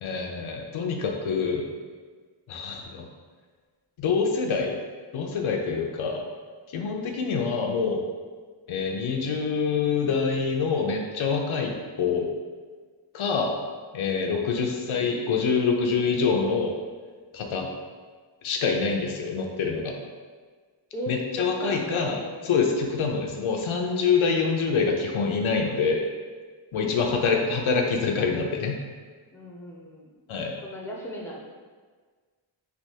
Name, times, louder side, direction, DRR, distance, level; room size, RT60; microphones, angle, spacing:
voice 1, 0.0-1.7 2.5-3.1 4.0-4.8 5.1-6.2 6.7-8.0 8.7-11.7 12.0-12.3 13.1-13.5 13.9-16.7 17.3-17.7 18.4-19.9 21.1-22.2 22.4-26.1 26.7-28.8 30.3-30.5, left 5 dB, 85° left, 2 dB, 0.6 m, -25 dB
voice 2, 20.9-22.3 29.3-30.1 30.6-31.4, equal, 5° left, -2 dB, 0.4 m, -37 dB
3.3 x 2.7 x 2.7 m, 1.5 s
wide cardioid pair, 90°, 47 cm